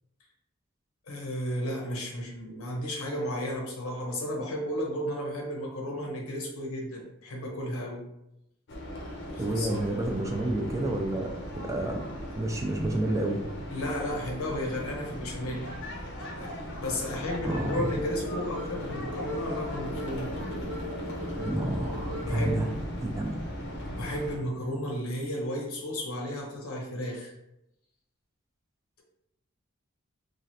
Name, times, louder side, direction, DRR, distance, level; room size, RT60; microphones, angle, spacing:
voice 1, 1.1-8.0 9.3-9.8 13.7-15.7 16.4-20.3 22.1-22.6 24.0-27.3, equal, 85° left, -1 dB, 0.8 m, -33 dB
sound 1, 8.7-24.4, equal, 55° left, 0.6 m, -38 dB
voice 2, 9.4-12.0 12.3-13.4 17.4-17.9 21.3-22.7 23.0-23.3, right 1 dB, 15° right, 2 dB, 0.3 m, -30 dB
sound 2, 17.6-22.6, left 2 dB, 35° right, 0.7 m, -40 dB
3.1 x 2.4 x 2.7 m, 0.85 s
head